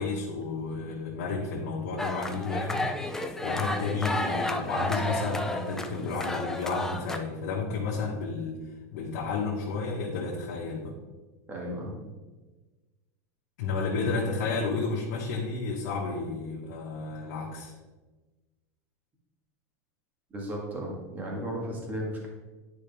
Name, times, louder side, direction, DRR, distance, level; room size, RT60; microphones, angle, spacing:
voice 1, 0.0-8.6 8.9-10.9 13.6-17.7, left 4 dB, 70° left, -4 dB, 1.5 m, -32 dB
sound 1, 2.0-7.2, left 2 dB, 5° left, 0.4 m, -32 dB
voice 2, 11.5-12.0 20.3-22.3, equal, 20° right, -2 dB, 1.9 m, -35 dB
9.8 x 5.0 x 3.6 m, 1.2 s
supercardioid pair, 150°, 9 cm